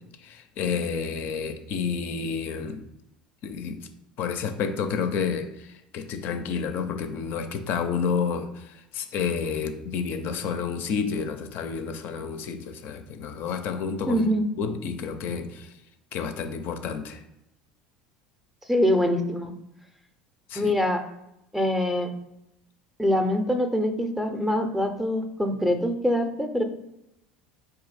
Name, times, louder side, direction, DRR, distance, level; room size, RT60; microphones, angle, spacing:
voice 1, 0.2-2.8 3.4-3.8 4.2-14.2 14.6-15.7 16.1-17.2 20.5-20.7, left 6 dB, 50° left, 7 dB, 0.4 m, -30 dB
voice 2, 14.1-14.5 18.7-19.5 20.6-21.0 21.5-22.1 23.0-26.6, left 1 dB, 5° right, 5 dB, 0.5 m, -24 dB
3.7 x 2.7 x 4.0 m, 0.84 s
figure-of-eight pair, 70°, 5 cm